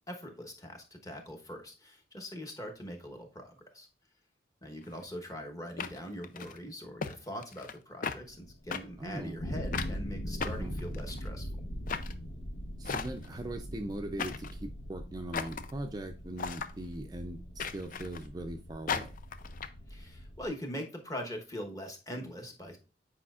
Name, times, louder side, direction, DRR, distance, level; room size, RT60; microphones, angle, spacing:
voice 1, 0.1-3.9 4.6-11.5 19.9-22.8, equal, 20° left, 3 dB, 1.0 m, -42 dB
sound 1, 4.8-5.0 5.8-6.6 7.0-7.1 7.4-7.8 8.0-8.2 8.7-8.8 9.7-9.9 10.4-11.3 11.9-12.1 12.8-13.4 14.2-14.6 15.3-15.7 16.4-16.7 17.6-18.3 18.9-19.7, left 6 dB, 45° left, 0.5 m, -36 dB
sound 2, 8.3-20.5, equal, 65° left, 1.1 m, -41 dB
voice 2, 9.0-9.5 10.4-10.8 12.8-19.1, right 1 dB, 20° right, 4 dB, 0.4 m, -40 dB
8.5 x 5.0 x 2.4 m, 0.34 s
head